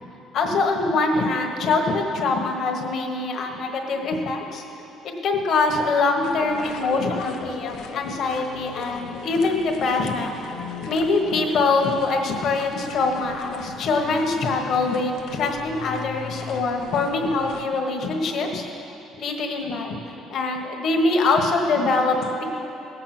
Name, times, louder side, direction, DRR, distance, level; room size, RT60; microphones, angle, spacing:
voice 1, 0.3-4.6 5.0-10.4 10.8-18.6 19.2-20.0 20.3-22.4, left 3 dB, 45° left, 2 dB, 1.3 m, -23 dB
Versailles - Entrée dans le jardin, 6.2-17.7, left 6 dB, 60° left, 0.7 m, -38 dB
17.5 x 7.7 x 6.0 m, 2.9 s
cardioid pair, 180°, 0 cm